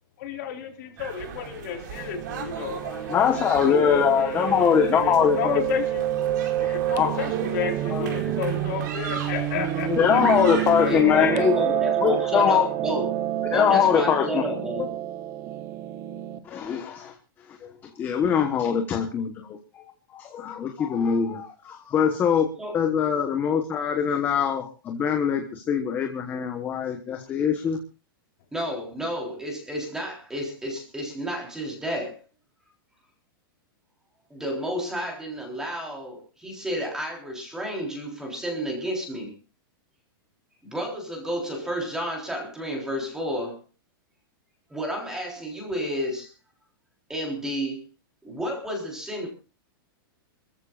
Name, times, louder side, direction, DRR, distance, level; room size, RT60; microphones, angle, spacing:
voice 1, 0.2-2.8 3.7-6.0 6.7-10.2 10.8-11.4, left 8 dB, 50° left, 2 dB, 4.1 m, -32 dB
sound 1, 1.0-11.0, right 6 dB, 50° right, 4.7 m, -38 dB
Piano, 1.9-16.4, right 12 dB, 25° right, 1.0 m, -29 dB
voice 2, 2.7-5.6 6.6-7.1 7.9-8.1 9.4-9.5 9.9-12.7 13.5-14.5 14.8-14.9 16.4-17.1 17.5-19.8 20.1-22.5 22.7-27.8, left 7 dB, 15° left, 5 dB, 1.2 m, -23 dB
voice 3, 10.9-13.1 13.5-14.9 22.6-22.7 28.5-32.2 34.3-39.3 40.6-43.6 44.7-46.3 47.1-47.8 48.2-49.3, equal, 5° right, 1 dB, 3.8 m, -31 dB
27.0 x 14.5 x 2.5 m, 0.32 s
supercardioid pair, 170°, 12 cm